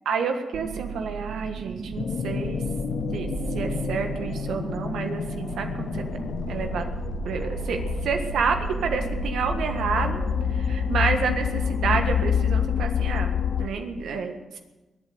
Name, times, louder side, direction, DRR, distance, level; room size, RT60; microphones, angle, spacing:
voice 1, 0.0-2.6 3.1-3.3 3.5-6.0 6.5-6.8 7.2-10.2 10.5-14.6, right 5 dB, 85° right, 5 dB, 1.6 m, -29 dB
sound 1, 0.5-12.7, right 7 dB, 60° right, 1.0 m, -35 dB
sound 2, 2.0-13.7, left 8 dB, 70° left, 0.6 m, -28 dB
22.0 x 8.0 x 8.0 m, 1.1 s
cardioid pair, 65°, 0 cm